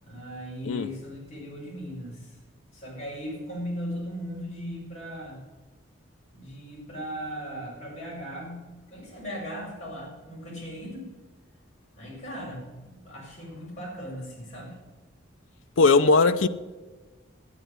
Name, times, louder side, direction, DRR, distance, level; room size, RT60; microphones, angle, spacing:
voice 1, 0.0-2.4 2.7-5.4 6.3-11.1 12.0-14.8, equal, 35° left, 6.0 m, -38 dB
voice 2, 15.8-16.5, left 3 dB, 80° left, 0.6 m, -19 dB
12.0 x 9.1 x 9.2 m
head